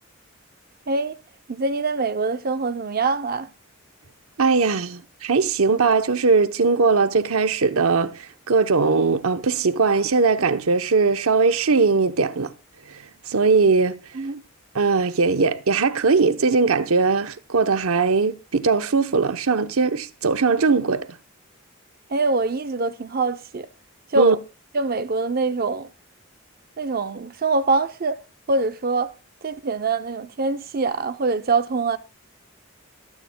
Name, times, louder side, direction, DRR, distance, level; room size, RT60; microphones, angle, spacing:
voice 1, 1.5-3.5 14.1-14.4 22.1-23.7 24.1-24.4 24.7-25.9 26.8-28.2 28.5-29.1 29.4-32.0, right 3 dB, 45° right, 0.6 m, -24 dB
voice 2, 4.4-12.5 12.9-14.0 14.7-21.1 24.2-24.4, right 4 dB, 80° right, 0.8 m, -20 dB
24.5 x 9.7 x 2.2 m
head